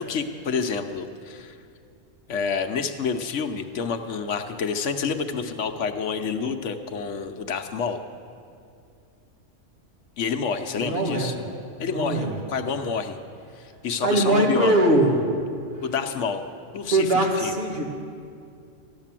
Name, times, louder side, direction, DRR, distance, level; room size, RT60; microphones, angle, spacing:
voice 1, 0.0-1.6 2.3-8.0 10.2-11.3 11.8-13.2 13.6-14.7 15.8-16.4 16.7-17.1 17.4-17.6, left 5 dB, 70° left, 7 dB, 1.1 m, -28 dB
voice 2, 10.7-11.4 11.9-12.4 14.0-15.3 16.9-17.8, right 1 dB, 50° right, -1 dB, 2.2 m, -21 dB
14.0 x 11.5 x 7.4 m, 2.4 s
omnidirectional pair, 1.3 m